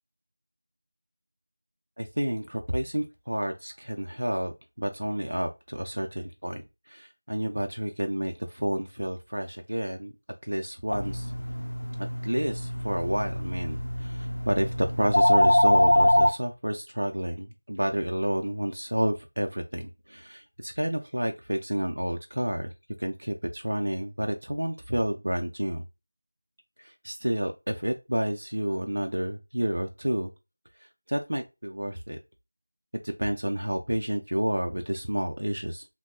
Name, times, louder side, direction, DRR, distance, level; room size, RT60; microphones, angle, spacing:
voice 1, 2.0-10.1 10.4-11.3 12.0-22.7 23.0-25.8 26.8-30.3 30.8-32.2 33.0-35.9, equal, 80° right, 4 dB, 0.3 m, -30 dB
sound 1, 10.9-16.3, left 1 dB, 65° left, 0.4 m, -24 dB
2.8 x 2.2 x 2.2 m, 0.26 s
figure-of-eight pair, 170°, 0 cm